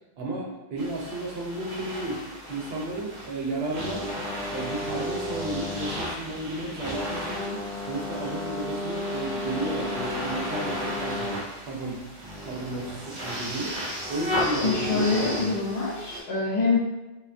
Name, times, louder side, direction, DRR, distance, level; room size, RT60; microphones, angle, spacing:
voice 1, 0.2-4.1 4.5-11.3 11.6-12.1 12.4-13.7 14.1-15.6, right 2 dB, 75° right, -2 dB, 0.8 m, -33 dB
sound 1, 0.8-16.2, left 1 dB, 45° right, 0.6 m, -33 dB
voice 2, 14.6-16.8, left 4 dB, 80° left, -4 dB, 0.8 m, -25 dB
2.3 x 2.2 x 2.5 m, 1.1 s
omnidirectional pair, 1.0 m